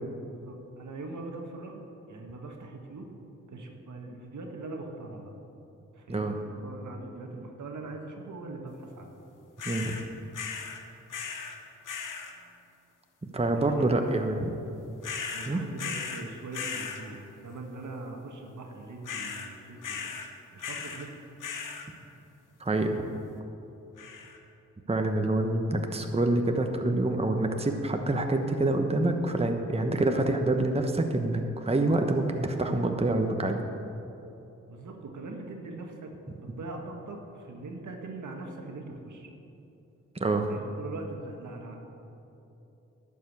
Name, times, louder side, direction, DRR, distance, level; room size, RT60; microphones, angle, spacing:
voice 1, 0.4-3.1 3.5-5.3 5.9-9.1 12.4-12.5 13.5-14.1 15.3-20.1 20.5-21.1 34.7-36.1 36.4-39.3 40.5-41.8, right 2 dB, 70° right, 2 dB, 1.5 m, -41 dB
sound 1, 9.6-10.0 10.3-10.8 11.1-11.6 11.8-12.3 15.0-16.2 16.5-17.0 19.0-19.5 19.8-20.3 20.6-21.1 21.4-21.9 24.0-24.4, left 6 dB, 75° left, 1.1 m, -37 dB
voice 2, 13.2-14.5 15.5-15.6 22.6-23.0 24.9-33.6 40.2-40.5, right 2 dB, 20° right, 4 dB, 1.0 m, -26 dB
11.5 x 5.5 x 8.0 m, 2.9 s
supercardioid pair, 40°, 31 cm